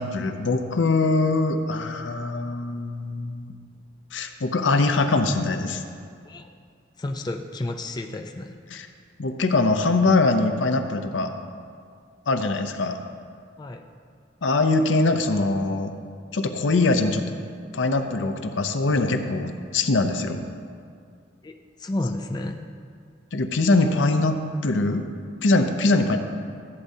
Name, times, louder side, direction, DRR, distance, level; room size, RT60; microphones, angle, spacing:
voice 1, 0.0-3.5 4.1-5.8 8.7-8.9 9.2-11.3 12.3-13.0 14.4-15.9 16.3-17.2 17.7-20.4 23.3-25.0 25.4-26.2, left 3 dB, 75° left, 7 dB, 0.6 m, -22 dB
voice 2, 7.0-8.5 13.6-13.8 21.4-21.5 21.8-22.7, left 1 dB, 20° left, 4 dB, 0.4 m, -31 dB
15.0 x 8.3 x 2.7 m, 2.2 s
head